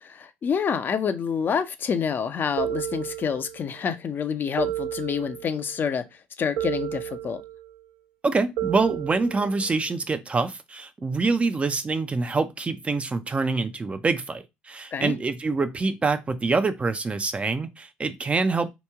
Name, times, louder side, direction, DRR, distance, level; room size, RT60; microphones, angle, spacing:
voice 1, 0.2-6.0 6.4-7.4 14.9-15.1, left 7 dB, 45° left, 0.5 m, -27 dB
sound 1, 2.6-3.7 4.6-5.7 6.6-7.7 8.6-9.7, right 12 dB, 90° right, 1.0 m, -32 dB
voice 2, 8.2-18.7, right 3 dB, 25° right, 0.5 m, -25 dB
3.0 x 2.7 x 3.4 m
supercardioid pair, 70°, 5 cm